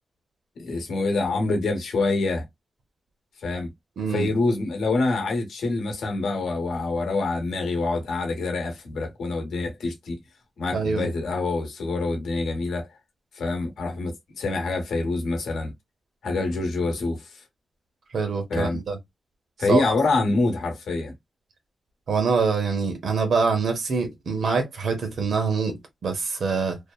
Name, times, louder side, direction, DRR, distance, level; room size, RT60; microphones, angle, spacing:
voice 1, 0.6-2.4 3.4-3.7 4.1-10.2 10.6-12.9 13.3-15.7 16.2-17.3 18.5-18.8 19.6-21.1, left 3 dB, 90° left, 1.0 m, -26 dB
voice 2, 4.0-4.3 10.7-11.1 18.1-19.0 19.7-19.8 22.1-26.8, right 5 dB, 75° right, 0.8 m, -25 dB
2.7 x 2.0 x 2.3 m
cardioid pair, 70°, 0 cm